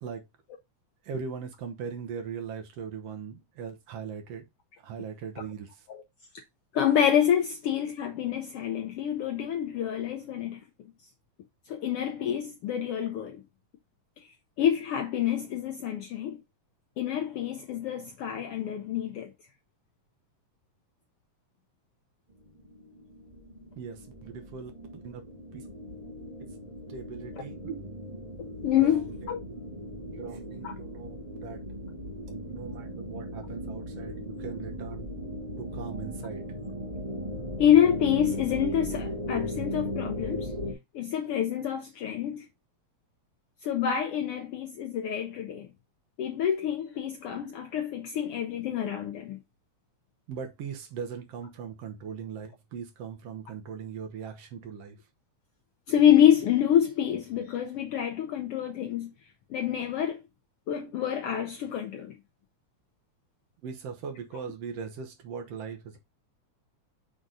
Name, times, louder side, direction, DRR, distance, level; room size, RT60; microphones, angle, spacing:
voice 1, 1.0-4.4 4.8-5.7 23.8-25.2 25.5-25.6 26.4-26.5 26.9-27.8 28.8-29.3 30.1-31.6 32.3-35.1 35.6-36.6 50.3-55.0 63.6-66.0, right 6 dB, 65° right, 1.9 m, -40 dB
voice 2, 6.7-10.6 11.7-13.4 14.6-16.4 17.0-19.3 28.6-29.4 30.6-30.7 37.6-40.5 40.9-42.5 43.6-45.7 46.2-49.4 55.9-59.1 59.5-60.2 60.7-62.1, left 10 dB, 75° left, 1.3 m, -27 dB
sound 1, 22.4-40.7, equal, 20° right, 1.2 m, -38 dB
6.3 x 3.9 x 3.9 m
omnidirectional pair, 3.4 m